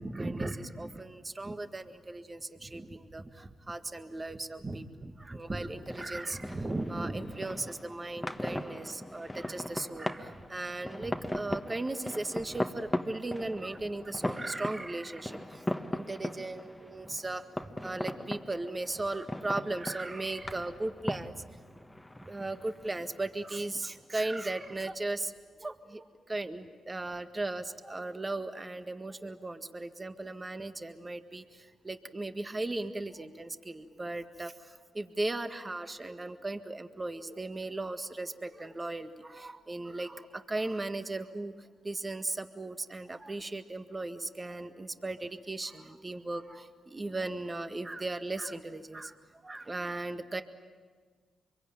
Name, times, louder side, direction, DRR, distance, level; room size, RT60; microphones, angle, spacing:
voice 1, 0.0-17.4 17.8-21.4 22.2-25.3 25.6-50.4, right 2 dB, 25° right, 8 dB, 1.8 m, -37 dB
sound 1, 5.5-24.7, left 1 dB, 10° left, 1.4 m, -39 dB
25.0 x 23.0 x 9.0 m, 1.5 s
supercardioid pair, 55°, 0 cm